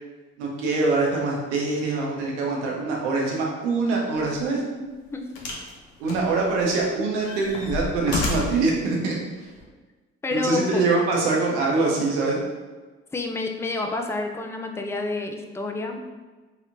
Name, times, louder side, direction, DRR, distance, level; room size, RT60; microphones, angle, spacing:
voice 1, 0.4-4.6 6.0-9.2 10.3-12.4, right 3 dB, 75° right, -2 dB, 0.8 m, -24 dB
sound 1, 4.2-4.4 5.4-5.7 6.1-6.8 7.2-8.7 9.6-9.7, left 3 dB, 70° left, 0.7 m, -30 dB
voice 2, 4.8-5.3 10.2-10.8 13.1-16.1, left 3 dB, 10° left, 3 dB, 0.3 m, -29 dB
3.2 x 3.0 x 2.5 m, 1.3 s
figure-of-eight pair, 45°, 36 cm